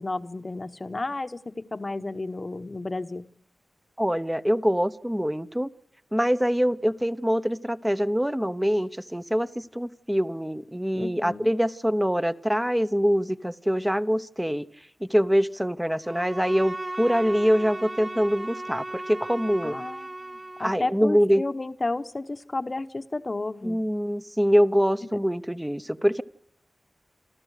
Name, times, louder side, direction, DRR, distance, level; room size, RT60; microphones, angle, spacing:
voice 1, 0.0-3.2 10.9-11.5 19.6-20.1 20.6-23.8 25.1-25.2, left 2 dB, 35° left, 10 dB, 1.0 m, -32 dB
voice 2, 4.0-5.7 6.1-14.7 15.0-19.8 20.6-21.4 23.6-26.2, equal, 5° right, 13 dB, 0.9 m, -24 dB
Bowed string instrument, 16.0-20.9, right 2 dB, 30° right, 1.2 m, -36 dB
28.0 x 13.0 x 8.2 m, 0.74 s
wide cardioid pair, 90°, 0 cm